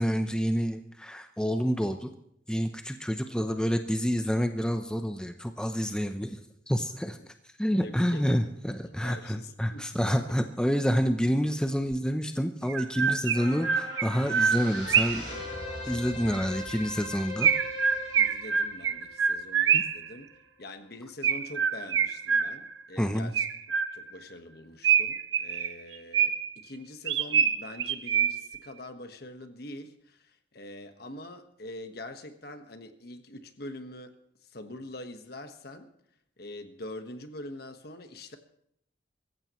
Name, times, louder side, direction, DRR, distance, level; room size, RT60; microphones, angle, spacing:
voice 1, 0.0-2.1 2.5-6.4 6.7-7.3 7.6-15.3 15.9-17.5 19.7-19.8 23.0-23.3, equal, 5° left, 0.7 m, -28 dB
voice 2, 7.8-8.4 8.7-10.4 18.1-20.3 20.6-23.5 23.9-35.9 36.4-38.4, left 1 dB, 55° left, 1.4 m, -44 dB
Chirp tweet, 11.9-12.0 12.7-15.3 17.4-20.1 21.2-22.8 23.3-24.2 24.8-26.6 27.1-28.6, right 7 dB, 80° right, 0.9 m, -26 dB
sound 1, 13.3-20.0 20.4-20.5, left 1 dB, 35° left, 6.0 m, -40 dB
24.5 x 15.0 x 3.1 m
head